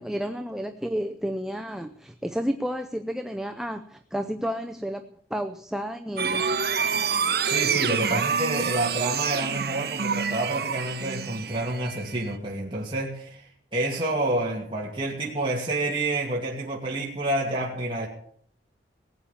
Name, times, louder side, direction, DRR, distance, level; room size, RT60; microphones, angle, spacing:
voice 1, 0.0-5.0 5.3-6.5, equal, 5° right, 6 dB, 0.5 m, -31 dB
sound 1, 6.2-12.4, right 6 dB, 55° right, 1.0 m, -27 dB
voice 2, 7.1-18.1, right 2 dB, 25° right, -4 dB, 2.5 m, -29 dB
19.0 x 8.7 x 7.2 m, 0.62 s
head